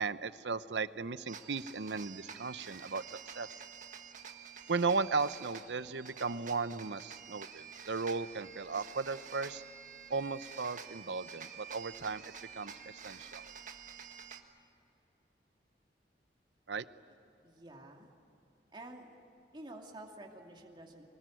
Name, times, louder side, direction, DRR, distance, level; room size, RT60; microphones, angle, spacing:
voice 1, 0.0-3.5 4.7-9.6 10.1-12.2 12.5-12.7 13.0-13.4 16.7-16.8, right 4 dB, 80° right, 14 dB, 0.8 m, -36 dB
sound 1, 1.3-14.4, right 6 dB, 45° right, 1.7 m, -49 dB
voice 2, 17.4-18.1 18.7-19.1 19.5-21.1, right 1 dB, 25° right, 1 dB, 2.6 m, -49 dB
24.5 x 20.0 x 9.2 m, 2.9 s
head